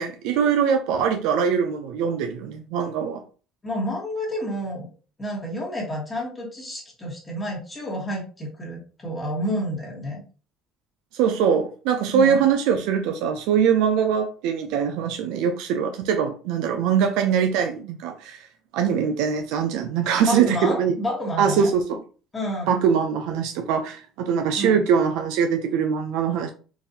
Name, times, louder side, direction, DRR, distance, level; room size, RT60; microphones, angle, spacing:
voice 1, 0.0-3.2 11.1-18.5 18.7-20.9 21.4-22.0 22.7-26.5, right 7 dB, 80° right, 0.4 m, -22 dB
voice 2, 3.6-4.9 5.2-10.2 12.1-12.4 20.3-21.7 22.3-22.8 24.6-24.8, equal, 15° left, 1.2 m, -29 dB
3.8 x 2.5 x 2.7 m
cardioid pair, 115°, 0 cm